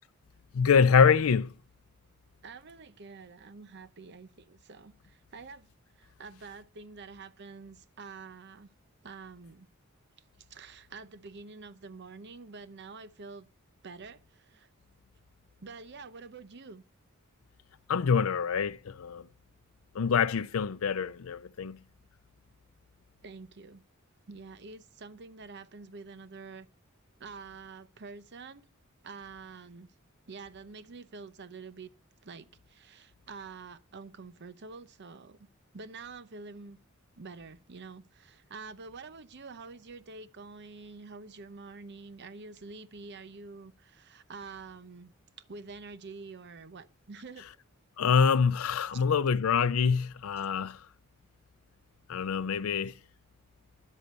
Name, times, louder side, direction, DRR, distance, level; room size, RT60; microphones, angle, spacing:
voice 1, 0.5-1.5 17.9-19.2 19.9-21.8 48.0-50.8 52.1-52.9, left 6 dB, 80° left, 0.5 m, -25 dB
voice 2, 2.4-5.7 6.0-8.7 9.0-9.7 10.5-13.5 13.8-14.7 15.6-16.8 23.2-23.8 24.3-26.7 27.2-28.6 29.0-29.9 30.3-31.9 32.2-35.4 35.7-36.8 37.2-45.1 45.5-47.5 48.9-49.0, right 4 dB, 55° right, 0.8 m, -47 dB
10.5 x 8.1 x 6.8 m
head